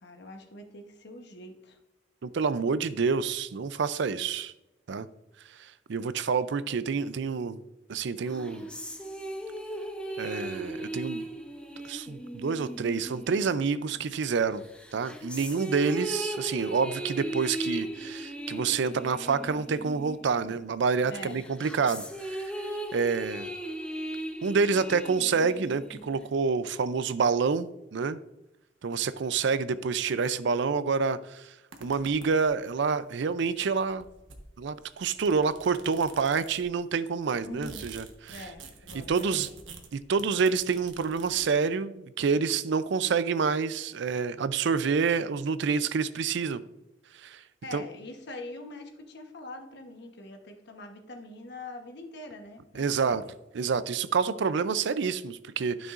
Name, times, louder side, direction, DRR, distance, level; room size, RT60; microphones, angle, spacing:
voice 1, 0.0-1.8 21.0-21.4 37.4-37.9 38.3-39.6 47.4-53.3, left 2 dB, 60° left, 5 dB, 1.1 m, -44 dB
voice 2, 2.2-4.5 4.9-5.1 5.6-7.6 7.9-8.7 10.2-11.3 11.8-14.6 14.9-22.5 22.9-23.5 24.4-28.2 28.8-31.5 31.8-34.1 34.6-38.5 38.9-39.5 39.9-46.6 47.2-47.4 47.7-47.8 52.8-53.2 53.5-55.9, right 5 dB, 65° right, 14 dB, 0.4 m, -28 dB
sound 1, 8.2-14.2 14.7-20.7 21.1-26.2, right 1 dB, 5° left, 0.7 m, -37 dB
sound 2, 31.7-32.7 33.6-33.7 33.8-36.8 37.2-41.5, right 4 dB, 85° right, 1.1 m, -48 dB
12.0 x 6.2 x 2.5 m, 0.94 s
head